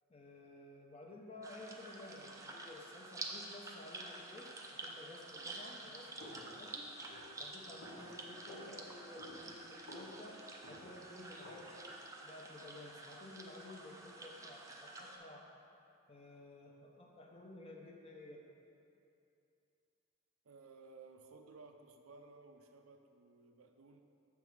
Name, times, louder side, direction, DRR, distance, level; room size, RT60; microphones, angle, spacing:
voice 1, 0.1-6.9 7.4-12.0 12.2-15.5 16.1-18.4, left 1 dB, 25° left, 0 dB, 0.6 m, -53 dB
sound 1, 1.4-15.2, right 2 dB, 15° right, 0.4 m, -49 dB
sound 2, 6.2-12.0, left 1 dB, 75° left, 1.3 m, -54 dB
voice 2, 20.4-24.0, right 3 dB, 70° right, 5 dB, 0.5 m, -57 dB
6.8 x 3.5 x 6.2 m, 2.7 s
head